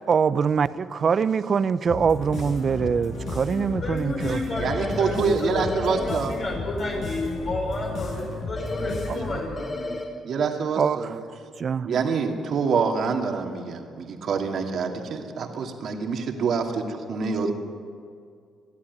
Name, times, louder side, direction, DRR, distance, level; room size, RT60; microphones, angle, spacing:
voice 1, 0.0-4.4 9.1-9.2 10.8-11.2 11.6-11.9, right 6 dB, 50° right, 0.7 m, -24 dB
sound 1, 1.9-9.5, left 3 dB, 70° left, 6.8 m, -34 dB
voice 2, 3.6-5.1 5.4-9.9, left 2 dB, 55° left, 5.2 m, -31 dB
sound 2, 4.6-5.0 5.6-6.0 8.6-9.0 9.6-10.0, left 2 dB, 30° left, 5.5 m, -33 dB
voice 3, 4.6-6.4 9.1-9.4 10.2-11.2 11.8-17.5, right 5 dB, 65° right, 2.5 m, -26 dB
21.5 x 13.0 x 9.7 m
cardioid pair, 90°, 0 cm